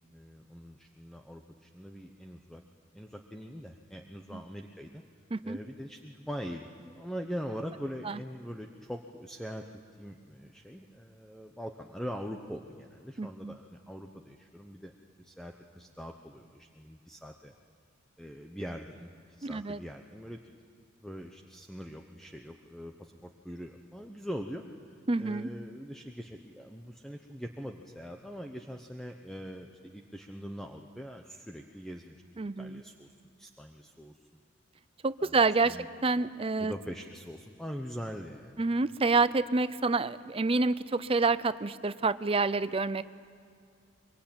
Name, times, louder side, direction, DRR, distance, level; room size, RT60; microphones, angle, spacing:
voice 1, 0.1-2.6 2.9-5.0 5.4-9.6 10.0-14.9 15.2-17.5 18.2-20.4 21.0-32.2 32.6-33.1 33.4-34.4 35.2-35.4 35.6-35.9 36.6-38.6, equal, ahead, 3 dB, 0.9 m, -42 dB
voice 2, 13.2-13.6 19.4-19.8 25.1-25.5 32.4-32.8 35.0-36.7 38.6-43.0, right 3 dB, 30° right, 15 dB, 0.6 m, -28 dB
23.5 x 23.5 x 8.8 m, 2.3 s
head